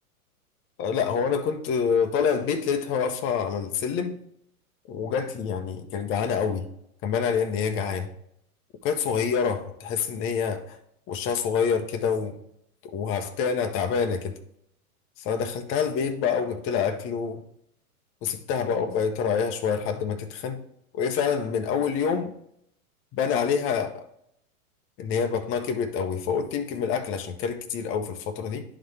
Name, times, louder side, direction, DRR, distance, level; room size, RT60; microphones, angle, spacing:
voice 1, 0.8-4.2 4.9-6.7 7.0-8.1 8.8-10.8 11.1-12.4 12.9-14.3 15.2-17.5 18.2-20.6 20.9-22.3 23.1-24.0 25.0-28.6, left 6 dB, 30° left, 0.7 m, -27 dB
11.0 x 3.9 x 3.3 m
hypercardioid pair, 105°, 45 cm